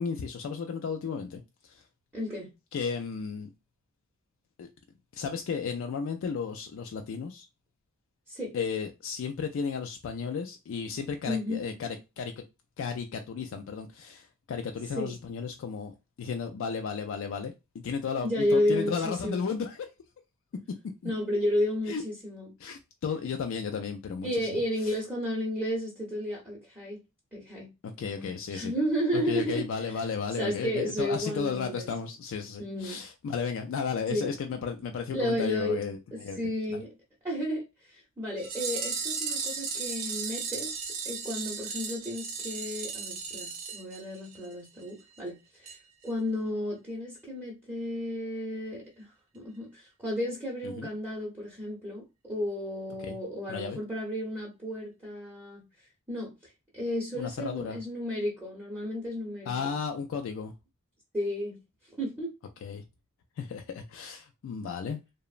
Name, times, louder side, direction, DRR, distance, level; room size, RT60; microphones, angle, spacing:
voice 1, 0.0-1.8 2.7-3.5 4.6-4.7 5.1-7.5 8.5-12.4 12.8-19.9 21.0-21.1 21.9-22.0 22.6-24.6 24.8-24.9 27.8-28.7 29.1-36.4 36.7-36.8 50.6-50.9 53.0-53.2 53.5-53.8 57.2-57.8 59.5-60.5 62.6-62.8 63.4-65.0, left 6 dB, 65° left, 0.3 m, -34 dB
voice 2, 2.1-2.5 8.3-8.5 11.2-11.6 15.0-15.2 18.2-19.5 21.0-22.5 24.2-27.0 27.3-27.7 28.0-29.9 30.4-31.9 32.6-33.0 34.1-34.3 35.1-35.8 36.1-36.9 37.2-45.4 45.6-45.7 46.0-49.0 49.3-55.6 56.1-59.7 61.1-61.6 62.0-62.3, equal, 10° right, 0.7 m, -32 dB
sound 1, 38.4-44.5 44.8-44.9 45.2-45.3 45.7-45.8 46.1-46.2, right 5 dB, 75° right, 0.6 m, -35 dB
2.9 x 2.0 x 2.4 m
head